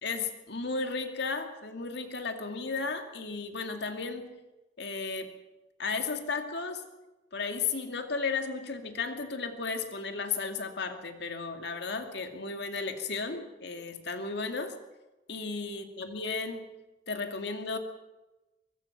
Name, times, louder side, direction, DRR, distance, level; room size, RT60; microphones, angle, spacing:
voice 1, 0.0-4.4 4.8-5.3 5.8-6.9 7.3-14.7 15.3-16.8 17.1-17.8, left 4 dB, 60° left, 6 dB, 2.4 m, -34 dB
23.0 x 22.5 x 6.0 m, 1.1 s
head